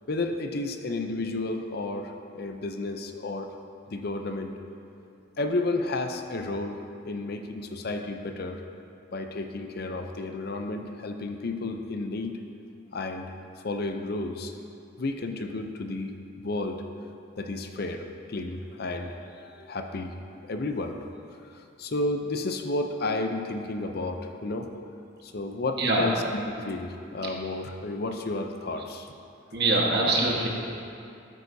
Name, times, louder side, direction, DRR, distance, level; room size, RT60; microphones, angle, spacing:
voice 1, 0.1-3.5 3.9-4.5 4.9-5.0 5.4-8.6 9.1-12.4 12.9-13.3 13.6-14.5 15.0-16.8 17.4-20.1 20.4-21.0 21.4-24.7 25.2-29.1, left 2 dB, 50° left, 5 dB, 0.6 m, -32 dB
voice 2, 29.5-30.5, right 2 dB, 55° right, -2 dB, 1.4 m, -23 dB
13.0 x 8.4 x 2.7 m, 2.5 s
head